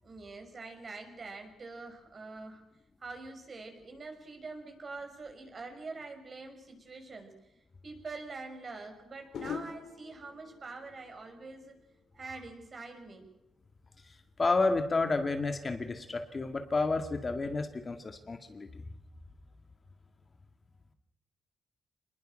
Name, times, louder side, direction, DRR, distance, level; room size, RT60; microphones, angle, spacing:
voice 1, 0.0-2.6 3.0-7.4 7.8-11.7 12.1-13.3, right 3 dB, 35° right, 5 dB, 5.9 m, -45 dB
sound 1, 7.9-8.0 9.3-12.4 12.7-13.2, left 7 dB, 70° left, 2.4 m, -45 dB
voice 2, 14.0-18.8, left 3 dB, 30° left, 6 dB, 2.0 m, -31 dB
27.5 x 20.5 x 6.4 m, 0.94 s
cardioid pair, 130°, 0 cm